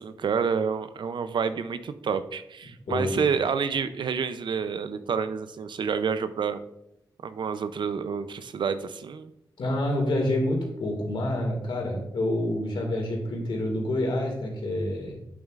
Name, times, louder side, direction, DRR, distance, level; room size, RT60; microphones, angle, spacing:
voice 1, 0.0-6.6 7.2-9.3, right 6 dB, 70° right, 11 dB, 0.5 m, -28 dB
voice 2, 2.9-3.2 9.6-15.2, left 1 dB, 80° left, 1 dB, 2.1 m, -27 dB
8.3 x 7.3 x 2.5 m, 0.82 s
wide cardioid pair, 85°, 8 cm